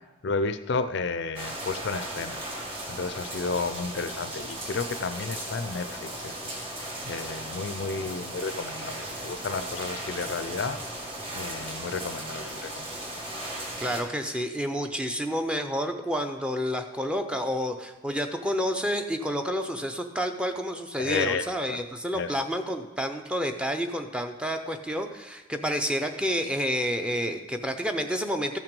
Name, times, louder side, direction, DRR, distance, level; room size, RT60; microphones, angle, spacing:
voice 1, 0.2-2.4 2.9-6.6 7.0-10.8 11.3-13.1 21.0-21.8 22.1-22.3, left 4 dB, 55° left, 11 dB, 0.4 m, -32 dB
sound 1, 1.4-14.0, right 1 dB, 25° right, 1.8 m, -36 dB
voice 2, 13.8-28.6, equal, 5° right, 6 dB, 0.5 m, -29 dB
14.0 x 5.9 x 5.3 m, 1.1 s
head